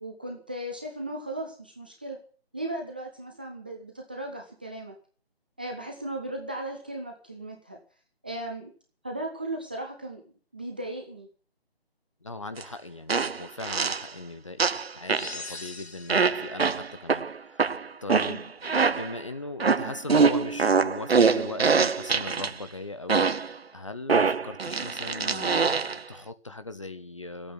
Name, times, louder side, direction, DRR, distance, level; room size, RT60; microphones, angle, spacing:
voice 1, 0.0-2.2 2.5-4.9 5.6-7.8 8.2-8.7 9.0-11.3, right 1 dB, 10° right, 1 dB, 0.7 m, -36 dB
voice 2, 12.2-17.7 18.0-23.3 23.5-27.5, left 2 dB, 30° left, 11 dB, 0.7 m, -39 dB
sound 1, 12.6-12.7 13.1-14.1 14.6-15.4 16.1-19.2 19.6-22.5 23.1-23.6 24.1-26.0, right 5 dB, 75° right, 0.7 m, -24 dB
sound 2, 15.1-16.5, left 3 dB, 80° left, 1.2 m, -41 dB
12.0 x 8.7 x 9.1 m, 0.41 s
figure-of-eight pair, 155°, 31 cm